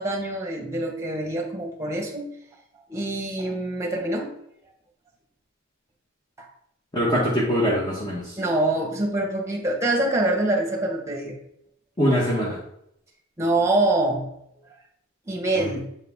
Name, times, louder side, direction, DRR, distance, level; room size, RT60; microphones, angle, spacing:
voice 1, 0.0-2.3 2.9-4.4 6.4-6.5 8.4-11.4 13.4-14.3 15.3-15.8, right 2 dB, 15° right, 0 dB, 1.2 m, -25 dB
voice 2, 6.9-8.2 12.0-12.6 15.6-15.8, equal, 20° left, -6 dB, 1.2 m, -23 dB
7.2 x 3.8 x 3.6 m, 0.75 s
head